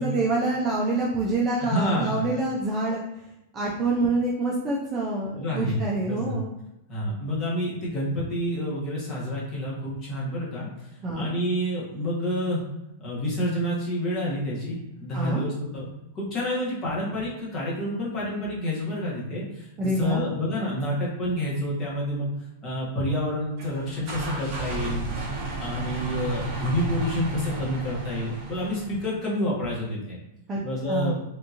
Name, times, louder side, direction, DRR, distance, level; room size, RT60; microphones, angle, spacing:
voice 1, 0.0-3.0 3.5-6.5 11.0-11.3 15.1-15.4 19.8-20.2 30.5-30.6 30.9-31.2, right 2 dB, 20° right, -3 dB, 0.4 m, -26 dB
voice 2, 1.6-2.3 5.3-5.8 6.1-6.4 6.9-10.9 11.1-12.6 13.0-15.9 16.1-22.3 22.6-25.0 25.6-30.2 30.6-31.1, equal, 25° left, -5 dB, 1.2 m, -28 dB
sound 1, 23.6-29.1, right 3 dB, 40° right, 1.2 m, -33 dB
3.5 x 2.8 x 2.5 m, 0.88 s
supercardioid pair, 160°, 0 cm